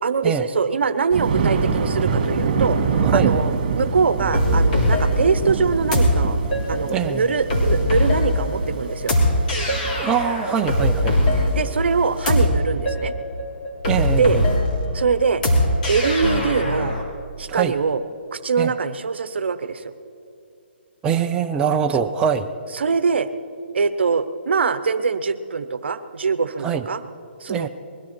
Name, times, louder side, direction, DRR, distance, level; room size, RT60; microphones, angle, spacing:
voice 1, 0.0-6.4 6.7-9.1 11.0-11.2 11.5-13.1 14.2-14.4 14.9-15.4 15.9-16.9 17.4-18.0 18.3-19.9 22.0-22.1 22.7-23.3 23.7-27.0 27.4-27.7, right 5 dB, 70° right, 12 dB, 0.9 m, -23 dB
Thunder, 1.1-12.2, right 5 dB, 45° right, 2.3 m, -25 dB
voice 2, 3.0-3.3 6.9-7.3 10.0-11.2 13.8-14.4 17.5-17.7 18.6-18.7 21.0-22.5 26.6-26.8 27.5-27.7, right 7 dB, 10° right, 4 dB, 0.4 m, -23 dB
sound 1, 4.3-17.0, left 1 dB, 45° left, 3.3 m, -21 dB
21.0 x 12.5 x 4.4 m, 2.5 s
hypercardioid pair, 150°, 6 cm